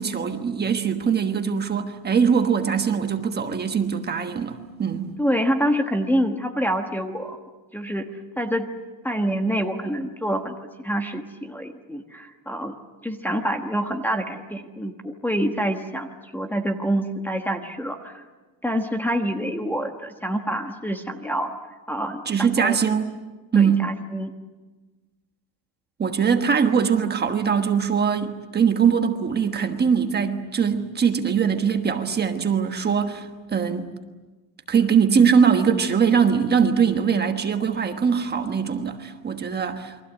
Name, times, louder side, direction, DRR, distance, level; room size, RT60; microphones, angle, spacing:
voice 1, 0.0-5.1 22.2-23.1 23.5-23.9 26.0-33.9 34.7-39.9, right 6 dB, 20° right, 6 dB, 1.3 m, -22 dB
voice 2, 5.2-7.4 7.7-8.1 8.4-8.7 9.0-12.7 13.0-18.2 18.6-21.5 21.9-22.2 22.6-22.8 23.5-24.3, equal, 5° left, 5 dB, 1.3 m, -26 dB
29.0 x 23.5 x 8.1 m, 1.2 s
cardioid pair, 175°, 45 cm